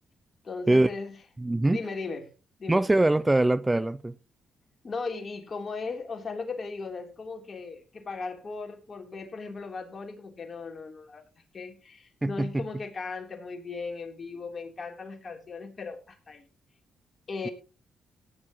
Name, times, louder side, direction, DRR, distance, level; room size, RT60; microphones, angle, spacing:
voice 1, 0.4-1.1 1.7-2.3 2.6-2.8 4.8-11.2 11.5-16.4 17.3-17.5, left 4 dB, 45° left, 3.4 m, -37 dB
voice 2, 1.4-1.8 2.7-4.1 12.2-12.6, right 2 dB, 15° right, 0.5 m, -23 dB
17.5 x 9.8 x 3.0 m
supercardioid pair, 55°, 0 cm